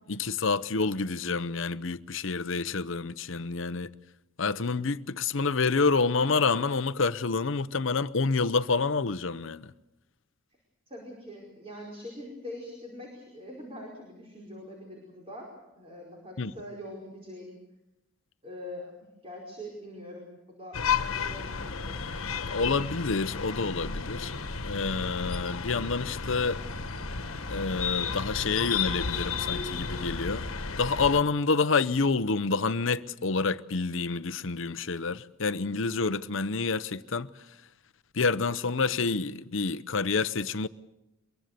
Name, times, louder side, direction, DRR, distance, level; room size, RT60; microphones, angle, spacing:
voice 1, 0.1-3.9 4.4-9.7 16.4-16.5 22.5-24.3 24.6-26.6 27.5-30.5 30.8-37.3 38.1-40.7, left 4 dB, 65° left, 0.7 m, -28 dB
voice 2, 10.9-15.5 15.8-17.6 18.4-18.9 19.2-22.1, left 1 dB, 30° right, 4.9 m, -43 dB
sound 1, 20.7-31.2, left 5 dB, 85° left, 1.4 m, -33 dB
23.5 x 23.0 x 6.7 m
head